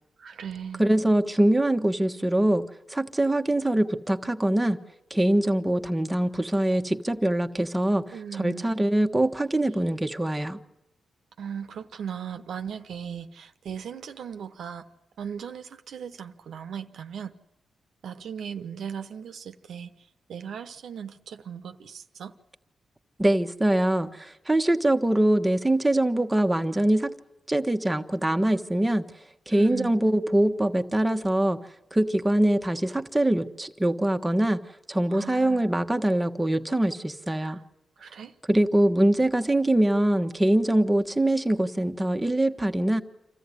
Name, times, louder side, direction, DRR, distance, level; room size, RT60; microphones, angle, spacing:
voice 1, 0.2-0.8 8.1-8.7 11.4-14.9 15.2-17.3 18.0-22.3 29.5-29.9 35.1-35.6 37.4-37.6 38.0-38.3, right 7 dB, 80° right, 0.9 m, -38 dB
voice 2, 0.8-4.8 5.1-10.6 23.2-27.1 27.5-29.0 29.5-31.6 31.9-34.6 34.9-37.6 38.5-43.0, right 1 dB, 10° right, 1.2 m, -23 dB
26.5 x 14.0 x 9.7 m
cardioid pair, 80°, 0 cm